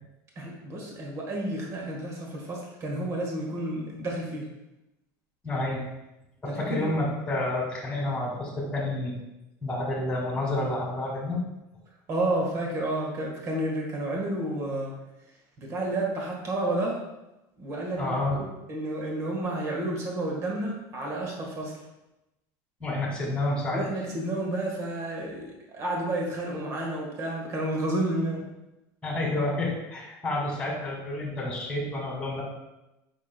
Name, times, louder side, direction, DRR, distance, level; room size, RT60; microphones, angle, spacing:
voice 1, 0.3-4.5 6.4-6.9 12.1-14.9 15.6-17.0 17.6-21.7 23.7-28.4, right 1 dB, 35° right, -1 dB, 1.5 m, -31 dB
voice 2, 5.4-5.8 6.4-9.1 9.6-11.4 18.0-18.4 22.8-23.8 29.0-32.4, left 2 dB, 10° left, -3 dB, 2.2 m, -29 dB
8.3 x 5.9 x 2.2 m, 0.95 s
cardioid pair, 145°, 9 cm